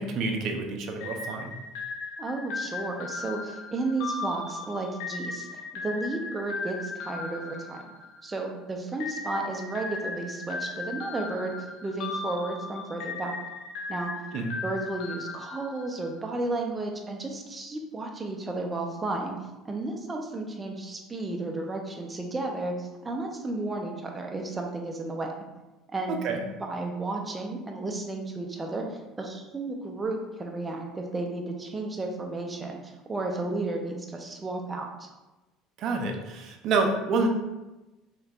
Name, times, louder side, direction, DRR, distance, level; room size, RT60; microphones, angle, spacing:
voice 1, 0.0-1.6 14.3-14.6 26.1-26.4 35.8-37.3, right 3 dB, 60° right, 3 dB, 0.7 m, -28 dB
sound 1, 1.0-8.4 9.0-16.2, left 4 dB, 75° left, 0.7 m, -37 dB
voice 2, 2.2-7.8 8.2-13.3 13.9-14.1 14.6-19.4 19.6-25.3 25.9-26.2 26.6-35.1, right 2 dB, 20° right, 2 dB, 0.8 m, -33 dB
4.5 x 3.2 x 2.5 m, 1.1 s
supercardioid pair, 85°, 0 cm